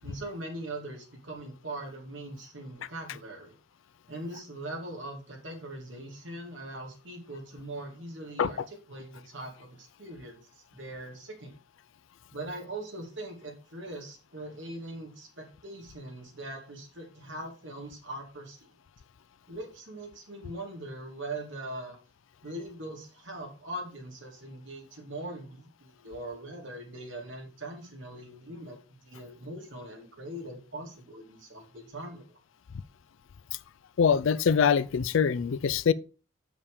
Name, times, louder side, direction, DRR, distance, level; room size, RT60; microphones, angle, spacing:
voice 1, 0.0-3.5 4.1-11.6 12.3-18.7 19.5-22.0 22.4-32.2, right 1 dB, 75° right, 2.4 m, -41 dB
voice 2, 34.0-35.9, left 6 dB, 85° left, 0.4 m, -23 dB
7.2 x 5.1 x 4.9 m
head